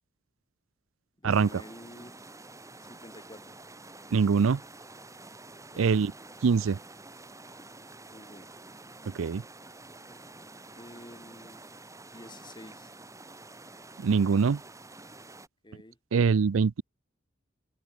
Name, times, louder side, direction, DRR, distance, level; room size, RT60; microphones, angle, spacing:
voice 1, 1.2-2.2 2.9-3.5 5.7-6.0 8.1-8.5 10.7-11.7 12.1-12.9 15.6-16.0, left 1 dB, 25° left, 4.5 m, -49 dB
sound 1, 1.3-15.5, right 2 dB, 15° right, 2.8 m, -49 dB
voice 2, 4.1-4.6 5.8-6.1 6.4-6.8 9.1-9.4 14.0-14.6 16.1-16.8, right 5 dB, 85° right, 0.5 m, -23 dB
head